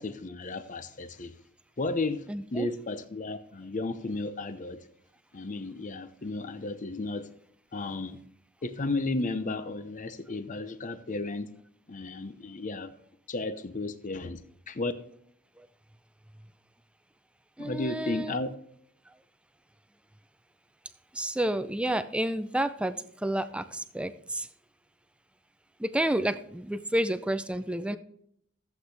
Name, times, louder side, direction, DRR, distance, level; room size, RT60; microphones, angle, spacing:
voice 1, 0.0-1.3 1.8-2.2 2.5-4.8 5.3-7.3 7.7-8.2 8.6-11.5 11.9-12.9 13.3-14.9 17.6-18.5, left 2 dB, 35° left, 0.7 m, -33 dB
voice 2, 2.3-2.7 15.6-15.7 17.6-18.4 21.1-24.5 25.8-28.0, right 1 dB, 5° right, 0.4 m, -30 dB
14.0 x 8.1 x 3.4 m
head